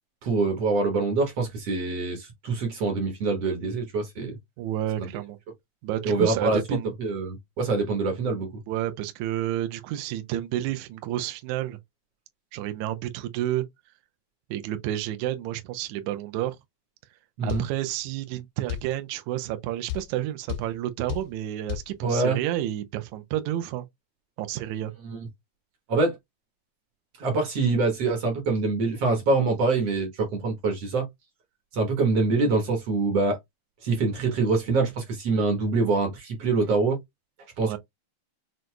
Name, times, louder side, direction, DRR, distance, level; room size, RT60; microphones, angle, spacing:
voice 1, 0.2-4.4 5.0-5.1 6.0-8.6 17.4-17.6 22.0-22.4 25.0-25.2 25.9-26.2 27.2-31.1 31.7-33.4 33.8-37.0 37.6-37.8, right 3 dB, 65° right, 1.6 m, -25 dB
voice 2, 4.6-5.4 5.8-6.9 8.7-11.8 12.5-13.6 14.5-16.6 17.4-23.8 24.4-24.9 37.6-37.8, right 13 dB, 90° right, 1.7 m, -30 dB
sound 1, 17.5-17.7 18.7-18.9 19.9-20.1 20.5-20.7 21.1-21.3 21.7-21.9, left 13 dB, 80° left, 1.6 m, -31 dB
6.1 x 2.5 x 2.2 m
omnidirectional pair, 4.1 m